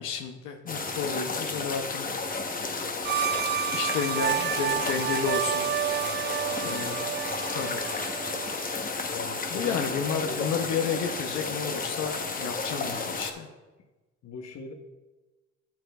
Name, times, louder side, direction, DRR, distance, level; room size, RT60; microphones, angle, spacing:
voice 1, 0.0-2.5 3.7-5.7 6.7-7.1 7.5-7.8 9.5-13.5, left 6 dB, 90° left, 4 dB, 0.7 m, -32 dB
sound 1, 0.7-13.3, left 4 dB, 30° left, 0.9 m, -32 dB
sound 2, 3.0-8.9, right 10 dB, 40° right, 0.4 m, -30 dB
voice 2, 6.5-6.9 9.1-10.5 14.2-14.7, left 3 dB, 60° left, 5 dB, 1.0 m, -40 dB
11.5 x 7.6 x 2.3 m, 1.2 s
cardioid pair, 90°, 30 cm